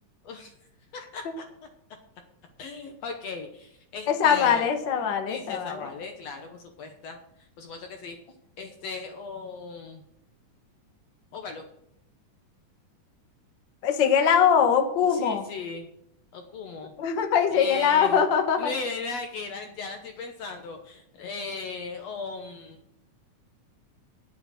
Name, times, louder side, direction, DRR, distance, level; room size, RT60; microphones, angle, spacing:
voice 1, 0.9-1.4 2.6-4.6 5.3-7.2 7.6-8.2 8.6-10.0 11.3-11.6 15.1-15.9 16.3-16.9 17.5-18.2 18.6-22.8, left 4 dB, 65° left, 5 dB, 1.9 m, -37 dB
voice 2, 4.1-5.8 13.8-15.4 17.0-18.7, left 7 dB, 50° left, 5 dB, 1.6 m, -22 dB
9.7 x 8.4 x 6.4 m, 0.75 s
omnidirectional pair, 3.5 m